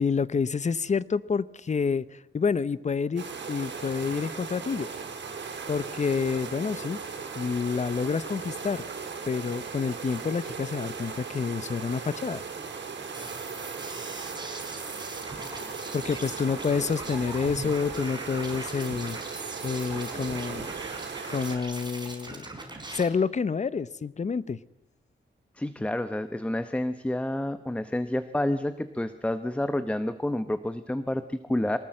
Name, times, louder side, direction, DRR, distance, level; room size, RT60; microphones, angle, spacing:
voice 1, 0.0-4.9 5.7-7.0 7.4-8.8 9.3-12.4 15.9-19.2 19.6-20.7 21.3-22.5 22.9-24.6, left 5 dB, 40° left, 18 dB, 0.7 m, -28 dB
sound 1, 3.2-21.6, right 5 dB, 80° right, 4.4 m, -38 dB
sound 2, 13.1-23.0, right 2 dB, 25° right, 4.5 m, -40 dB
Liquid, 13.8-17.8 18.3-18.8, left 2 dB, 55° left, 6.3 m, -55 dB
voice 2, 25.6-31.8, left 1 dB, 5° left, 11 dB, 0.9 m, -29 dB
23.0 x 19.0 x 7.7 m, 0.88 s
wide cardioid pair, 115°, 18 cm